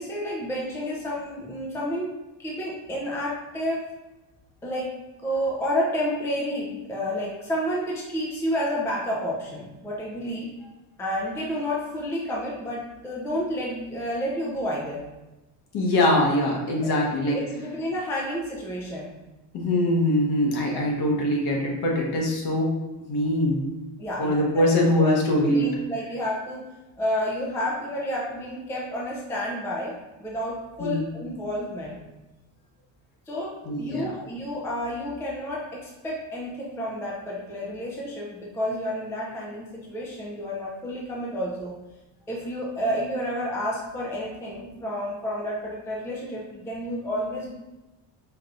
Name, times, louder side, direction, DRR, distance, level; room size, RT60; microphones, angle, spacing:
voice 1, 0.0-2.1 2.4-3.9 4.6-4.9 5.2-10.5 11.0-15.0 16.8-17.0 17.3-19.1 24.0-24.8 25.4-26.6 27.0-32.0 33.3-41.8 42.3-47.5, equal, 5° left, -3 dB, 0.5 m, -30 dB
voice 2, 15.7-17.4 19.5-22.7 23.1-23.7 24.2-25.6 30.8-31.1 33.6-34.0, left 1 dB, 55° left, -1 dB, 1.1 m, -23 dB
4.7 x 3.1 x 2.5 m, 1.1 s
cardioid pair, 140°, 46 cm